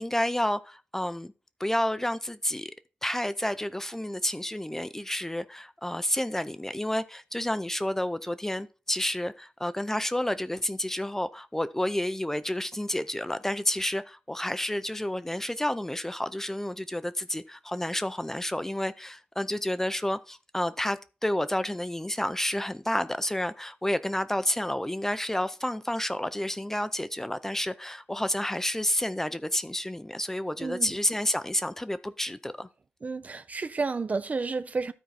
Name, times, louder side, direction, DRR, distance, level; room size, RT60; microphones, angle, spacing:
voice 1, 0.0-1.3 1.6-2.7 3.0-32.7, left 1 dB, 10° left, 0.5 m, -30 dB
voice 2, 30.6-30.9 33.0-34.9, right 4 dB, 40° right, 0.5 m, -31 dB
13.0 x 4.6 x 4.1 m
wide cardioid pair, 100°, 4 cm